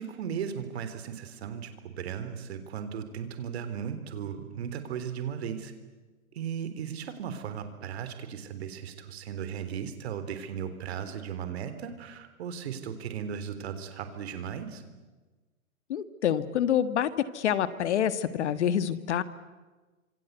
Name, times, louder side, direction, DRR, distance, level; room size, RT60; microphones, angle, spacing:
voice 1, 0.0-5.7 6.3-14.8, right 8 dB, 45° right, 9 dB, 3.7 m, -36 dB
voice 2, 15.9-17.1 17.3-19.2, left 9 dB, 55° left, 13 dB, 1.7 m, -27 dB
27.0 x 26.5 x 8.2 m, 1.3 s
hypercardioid pair, 160°, 42 cm